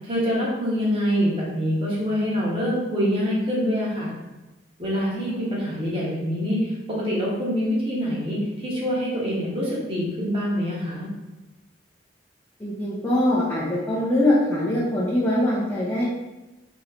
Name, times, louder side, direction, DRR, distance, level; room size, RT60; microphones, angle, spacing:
voice 1, 0.0-4.1 4.8-11.1, equal, 30° right, -6 dB, 1.2 m, -25 dB
voice 2, 12.6-16.1, left 1 dB, 15° left, -8 dB, 0.7 m, -23 dB
3.1 x 2.9 x 4.0 m, 1.1 s
head